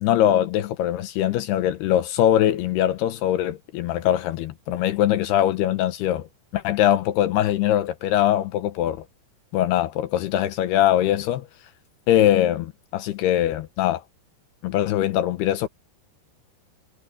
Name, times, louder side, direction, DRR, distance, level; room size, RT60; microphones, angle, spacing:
voice 1, 0.0-6.3 6.5-9.0 9.5-11.5 12.1-14.0 14.6-15.7, left 12 dB, 75° left, 2.8 m, -22 dB
omnidirectional pair, 4.9 m